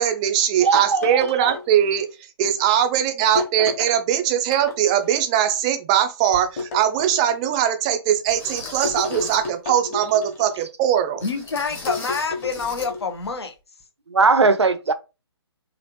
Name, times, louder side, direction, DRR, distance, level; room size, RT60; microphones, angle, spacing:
voice 1, 0.0-2.1 2.4-11.2, right 10 dB, 15° right, 0.3 m, -21 dB
voice 2, 0.6-1.5 14.1-14.9, right 4 dB, 80° right, 0.5 m, -19 dB
sound 1, 0.7-2.1 3.4-4.0 4.5-5.1 6.6-7.5 8.8-10.6 11.9-13.1, left 3 dB, 35° left, 1.1 m, -32 dB
sound 2, 6.3-6.5 7.1-7.2 8.3-9.5 11.2-12.9 13.2-13.4 13.8-13.9, left 2 dB, 15° left, 0.7 m, -38 dB
voice 3, 11.2-13.5, left 5 dB, 70° left, 0.8 m, -27 dB
3.2 x 2.4 x 2.9 m
figure-of-eight pair, 135°, 14 cm